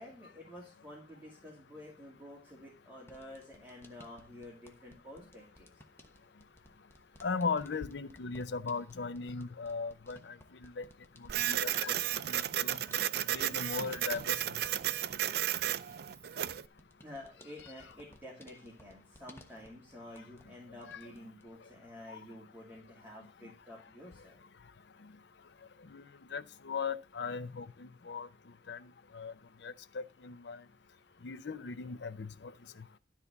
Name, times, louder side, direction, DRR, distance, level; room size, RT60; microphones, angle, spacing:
voice 1, 0.0-5.7 17.0-24.4, left 1 dB, 10° right, 2.7 m, -50 dB
sound 1, 3.0-20.5 20.8-21.5, left 1 dB, 15° left, 1.1 m, -60 dB
voice 2, 7.2-10.4 10.6-10.9 11.2-12.8 13.3-14.4 17.6-17.7 20.9-21.0 22.1-22.2 25.9-26.0 26.3-28.3 28.7-28.8 29.1-29.3 29.6-30.6 31.2-32.5, left 4 dB, 65° left, 0.6 m, -38 dB
Printer, 11.3-16.7, right 11 dB, 55° right, 0.4 m, -33 dB
13.0 x 4.4 x 6.9 m
head